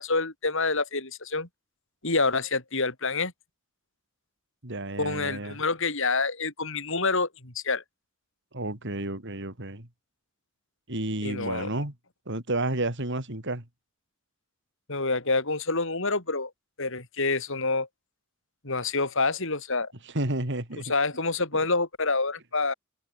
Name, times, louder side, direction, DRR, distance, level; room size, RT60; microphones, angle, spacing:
voice 1, 0.0-1.5 2.0-3.3 5.0-7.8 11.2-11.7 14.9-16.5 16.8-17.9 18.6-19.9 20.9-22.7, left 3 dB, 65° left, 5.7 m, -27 dB
voice 2, 4.6-5.6 8.5-9.9 10.9-11.9 12.3-13.6 20.1-20.9 21.5-21.7, right 2 dB, 60° right, 4.2 m, -31 dB
head